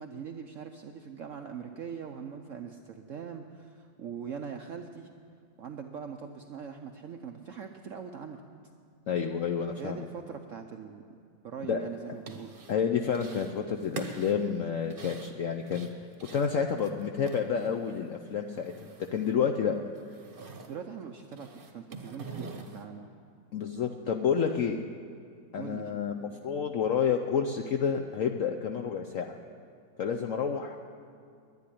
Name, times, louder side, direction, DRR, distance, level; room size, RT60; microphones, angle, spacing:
voice 1, 0.0-5.1 5.6-8.4 9.8-11.0 11.4-12.6 20.7-23.1 25.5-25.9, right 7 dB, 65° right, 5 dB, 0.7 m, -42 dB
voice 2, 9.1-10.1 11.7-11.8 12.7-15.9 16.3-18.7 19.1-19.8 23.5-24.8 25.5-29.3 30.0-30.8, left 7 dB, 70° left, 4 dB, 0.7 m, -29 dB
sound 1, 12.0-12.8 13.1-13.5 13.8-18.1 18.3-19.4 19.6-20.8 21.2-22.8, right 3 dB, 35° right, 1.0 m, -45 dB
10.5 x 10.5 x 10.0 m, 2.3 s
omnidirectional pair, 2.0 m